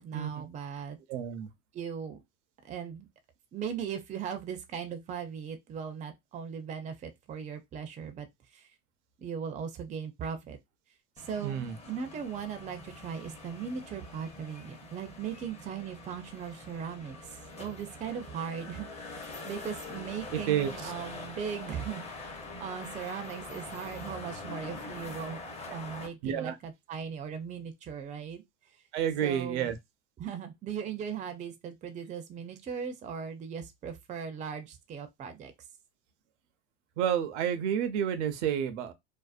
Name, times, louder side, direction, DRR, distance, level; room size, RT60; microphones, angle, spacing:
voice 1, 0.0-1.0 1.7-2.2 2.6-3.1 3.5-8.7 9.2-10.6 11.2-17.3 17.6-25.4 25.7-28.4 29.2-29.8 30.2-35.5, right 7 dB, 20° right, 0.4 m, -38 dB
voice 2, 1.1-1.5 11.4-11.7 20.5-20.7 26.2-26.6 28.9-29.8 37.0-38.9, right 9 dB, 90° right, 0.6 m, -29 dB
sound 1, 11.2-26.1, left 3 dB, 20° left, 0.7 m, -44 dB
2.6 x 2.0 x 2.3 m
supercardioid pair, 120°, 34 cm